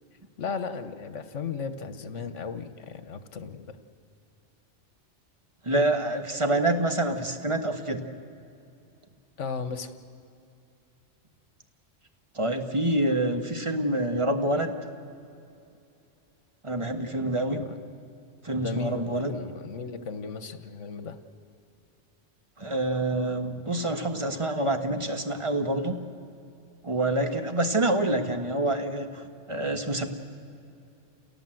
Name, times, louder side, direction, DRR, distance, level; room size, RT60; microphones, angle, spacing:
voice 1, 0.4-3.8 9.4-9.9 17.5-17.7 18.6-21.2, left 5 dB, 75° left, 10 dB, 1.5 m, -35 dB
voice 2, 5.6-8.0 12.3-14.8 16.6-17.6 18.4-19.3 22.6-26.0 26.8-29.2 29.5-30.1, right 1 dB, 25° right, 5 dB, 1.4 m, -27 dB
29.5 x 17.5 x 7.8 m, 2.6 s
omnidirectional pair, 1.3 m